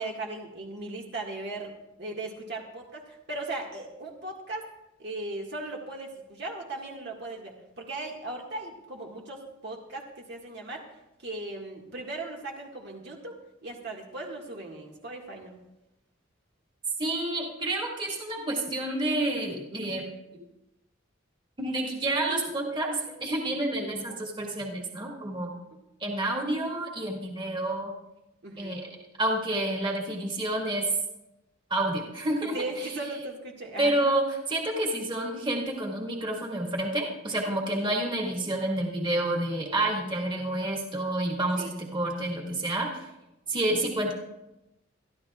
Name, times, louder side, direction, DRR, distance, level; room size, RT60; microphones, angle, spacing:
voice 1, 0.0-4.7 5.0-10.8 11.2-15.5 24.0-24.1 28.4-28.8 32.5-33.9 37.7-37.9 41.6-41.7, right 2 dB, 60° right, -1 dB, 1.9 m, -38 dB
voice 2, 17.0-20.2 21.6-25.5 26.0-27.9 28.6-28.9 29.2-30.9 31.7-32.5 32.8-32.9 33.8-43.0 43.5-44.1, right 1 dB, 25° right, -2 dB, 2.2 m, -29 dB
23.5 x 13.0 x 2.4 m, 0.92 s
head